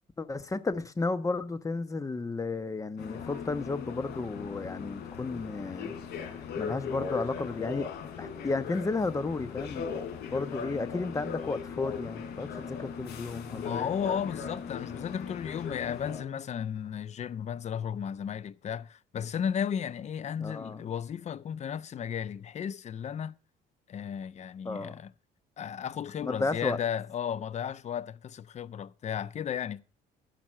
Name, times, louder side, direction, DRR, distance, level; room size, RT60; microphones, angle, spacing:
voice 1, 0.2-5.9 6.6-7.9 8.2-13.9 20.4-20.8 24.6-24.9 26.2-26.8, left 3 dB, 20° left, 1.1 m, -33 dB
sound 1, 3.0-16.2, left 6 dB, 75° left, 3.7 m, -38 dB
voice 2, 13.5-23.3 23.9-25.1 25.6-29.8, left 8 dB, 40° left, 0.7 m, -34 dB
15.5 x 6.0 x 7.5 m
cardioid pair, 110°, 17 cm